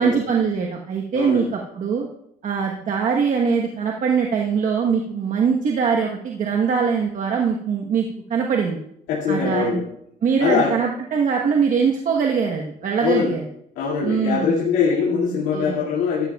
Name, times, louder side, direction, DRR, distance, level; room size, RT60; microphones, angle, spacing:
voice 1, 0.0-2.1 2.4-8.8 9.3-9.8 10.2-13.4 14.0-14.7 15.2-15.8, right 6 dB, 50° right, 0 dB, 1.2 m, -22 dB
voice 2, 1.1-1.5 9.1-9.9 10.4-10.8 13.0-13.4 13.8-16.3, left 6 dB, 90° left, -6 dB, 2.4 m, -22 dB
12.5 x 12.0 x 2.3 m, 0.74 s
cardioid pair, 110°, 17 cm